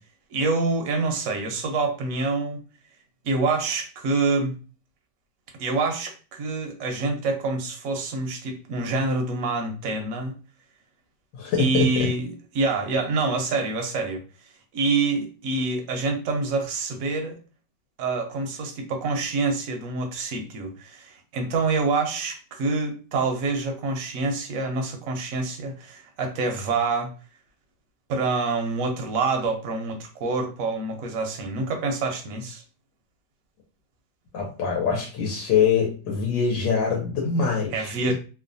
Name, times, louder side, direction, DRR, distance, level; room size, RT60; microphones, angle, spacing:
voice 1, 0.3-2.6 3.2-4.6 5.6-10.4 11.6-12.3 12.5-14.2 14.7-17.3 18.0-27.1 28.1-32.6 37.7-38.1, right 3 dB, 65° right, 3 dB, 0.8 m, -26 dB
voice 2, 11.3-12.1 34.3-38.1, left 6 dB, 85° left, -1 dB, 1.4 m, -24 dB
3.1 x 2.2 x 2.5 m, 0.36 s
omnidirectional pair, 1.9 m